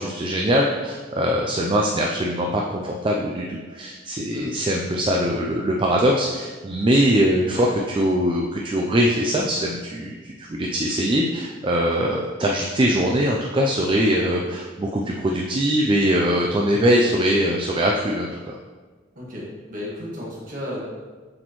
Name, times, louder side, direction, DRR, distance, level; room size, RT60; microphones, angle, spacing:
voice 1, 0.0-18.6, equal, 25° right, 0 dB, 0.4 m, -22 dB
voice 2, 19.1-20.8, left 1 dB, 45° right, -4 dB, 1.6 m, -33 dB
7.6 x 4.2 x 3.0 m, 1.4 s
head